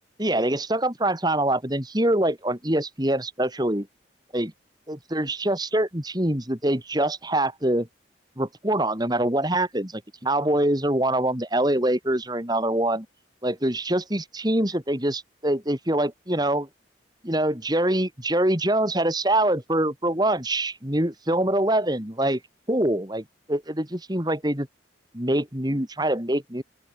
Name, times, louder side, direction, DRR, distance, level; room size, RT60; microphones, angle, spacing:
voice 1, 0.2-3.9 4.3-4.5 4.9-7.9 8.4-13.1 13.4-16.7 17.2-22.4 22.7-24.7 25.1-26.6, right 1 dB, 20° right, 3.3 m, -24 dB
open air
head